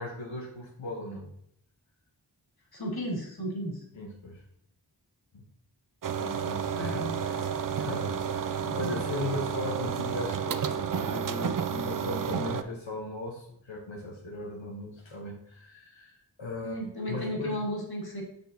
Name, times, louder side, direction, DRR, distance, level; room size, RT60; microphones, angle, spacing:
voice 1, 0.0-1.3 3.9-4.4 5.3-5.4 6.2-16.7 17.1-17.6, left 2 dB, 85° left, -2 dB, 1.1 m, -38 dB
voice 2, 2.7-3.8 6.7-7.1 8.6-9.0 16.6-18.2, equal, 55° left, -1 dB, 1.9 m, -34 dB
sound 1, 6.0-12.6, right 7 dB, 50° right, 0.5 m, -31 dB
6.8 x 6.0 x 2.7 m, 0.71 s
wide cardioid pair, 50°, 44 cm